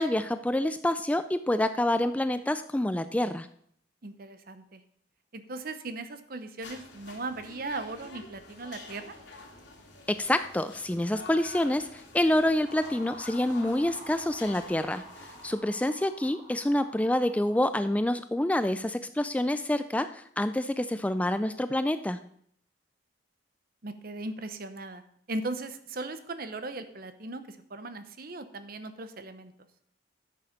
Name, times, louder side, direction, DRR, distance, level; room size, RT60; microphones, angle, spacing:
voice 1, 0.0-3.5 10.1-15.0 15.4-22.2, left 1 dB, 10° left, 11 dB, 0.3 m, -27 dB
voice 2, 4.0-4.8 5.3-9.1 15.5-15.6 23.8-25.0 25.3-29.5, right 2 dB, 55° right, 10 dB, 0.9 m, -38 dB
sound 1, 6.6-15.5, left 2 dB, 85° left, 2.6 m, -48 dB
sound 2, 12.6-18.0, equal, 30° right, 3.0 m, -49 dB
12.0 x 6.7 x 5.2 m, 0.65 s
head